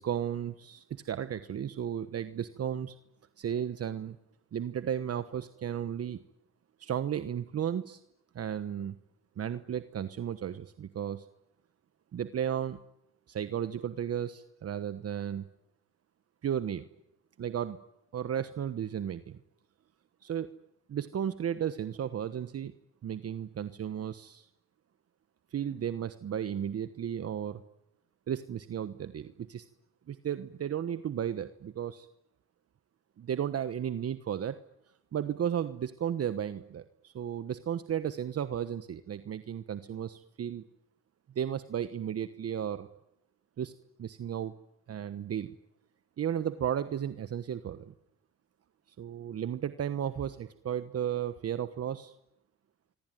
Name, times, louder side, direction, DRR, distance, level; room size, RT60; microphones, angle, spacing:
voice 1, 0.0-3.0 3.4-4.2 4.5-6.2 6.8-8.0 8.3-9.0 9.4-11.3 12.1-12.8 13.3-15.4 16.4-16.8 17.4-17.8 18.1-19.4 20.2-20.5 20.9-22.7 23.0-24.5 25.5-27.6 28.3-29.7 30.1-32.1 33.2-34.6 35.1-40.6 41.3-42.9 43.6-43.7 44.0-44.5 44.9-45.5 46.2-47.9 49.0-52.1, right 9 dB, 50° right, 12 dB, 1.2 m, -34 dB
26.0 x 25.0 x 9.3 m, 0.85 s
cardioid pair, 90°, 30 cm